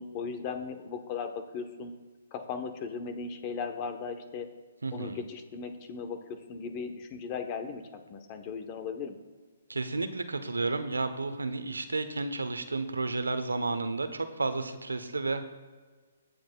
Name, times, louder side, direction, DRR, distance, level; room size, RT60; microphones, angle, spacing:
voice 1, 0.0-1.9 2.3-4.5 4.9-9.2, left 5 dB, 35° left, 7 dB, 1.0 m, -37 dB
voice 2, 4.8-5.2 9.7-15.4, right 3 dB, 85° right, 9 dB, 0.9 m, -32 dB
16.5 x 7.8 x 2.3 m, 1.4 s
hypercardioid pair, 135°, 0 cm